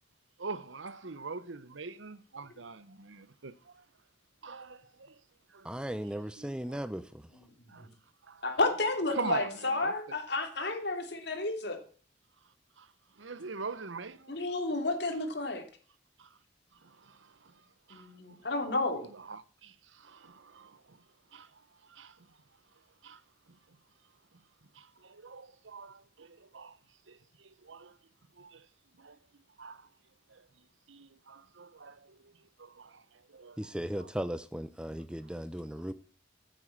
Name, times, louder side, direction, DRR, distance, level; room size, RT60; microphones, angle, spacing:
voice 1, 0.4-3.8 4.4-5.2 5.5-6.9 7.7-7.9 8.2-8.4 9.1-9.9 12.8-14.4 16.2-16.3 16.8-17.6 17.9-18.4 19.0-21.0 21.3-22.3 23.0-23.2 23.5-23.8 24.7-26.8 27.1-28.0 28.4-28.7 29.0-29.2 29.6-29.9 30.3-30.5 30.9-34.1, right 4 dB, 85° right, 1.0 m, -44 dB
voice 2, 5.6-7.3 33.6-35.9, equal, 5° right, 0.6 m, -37 dB
voice 3, 8.4-11.8 14.3-15.7 17.9-19.0, left 2 dB, 60° left, 3.1 m, -31 dB
15.0 x 8.0 x 7.4 m
head